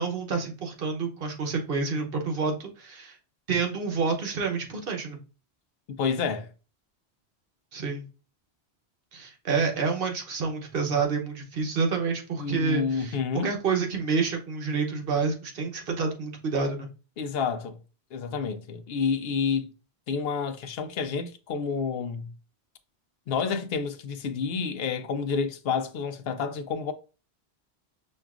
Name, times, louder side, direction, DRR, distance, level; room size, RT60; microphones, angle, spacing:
voice 1, 0.0-3.2 3.5-5.2 7.7-8.0 9.1-13.2 13.4-16.9, right 4 dB, 65° right, 1.0 m, -28 dB
voice 2, 5.9-6.5 12.4-13.5 17.2-17.8 18.1-19.7 20.1-22.3 23.3-26.9, left 5 dB, 70° left, 0.8 m, -29 dB
6.2 x 2.4 x 2.4 m
omnidirectional pair, 1.1 m